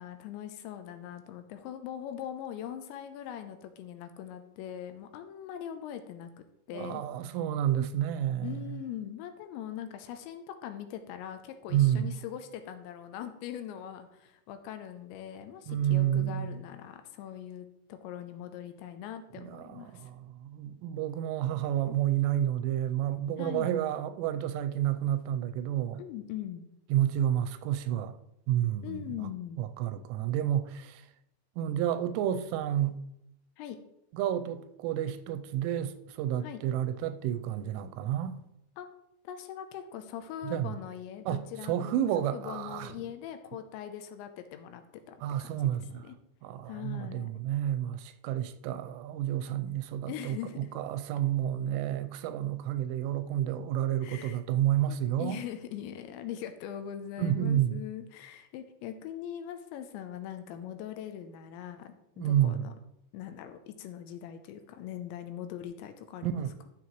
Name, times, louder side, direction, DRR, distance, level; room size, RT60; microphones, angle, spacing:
voice 1, 0.0-6.3 6.7-7.0 7.8-7.9 8.4-20.1 23.4-23.7 26.0-26.6 28.8-29.7 33.6-33.8 36.4-36.6 38.8-38.9 39.2-45.2 45.4-46.2 46.7-47.3 50.1-50.7 54.0-54.4 54.9-62.7 63.1-66.5, left 10 dB, 80° left, 2.9 m, -41 dB
voice 2, 6.7-8.8 11.7-12.2 15.7-16.6 19.3-26.0 26.9-28.2 28.5-29.3 29.6-31.0 31.6-33.0 34.1-38.4 40.4-40.7 41.3-42.9 45.2-46.0 46.4-55.4 57.2-57.8 62.2-62.7 66.2-66.5, right 11 dB, 90° right, 3.1 m, -30 dB
12.5 x 7.4 x 3.1 m
omnidirectional pair, 5.5 m